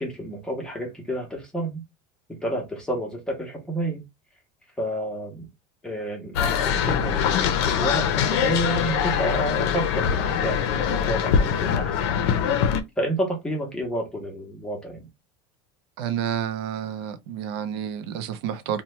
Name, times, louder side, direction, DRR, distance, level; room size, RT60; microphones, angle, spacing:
voice 1, 0.0-1.8 2.3-4.0 4.8-5.5 5.8-12.3 13.0-15.1, right 1 dB, 5° left, 0.7 m, -30 dB
sound 1, 6.3-12.8, left 7 dB, 75° left, 0.5 m, -23 dB
voice 2, 16.0-18.8, right 9 dB, 75° right, 0.5 m, -29 dB
2.8 x 2.1 x 3.0 m
cardioid pair, 170°, 14 cm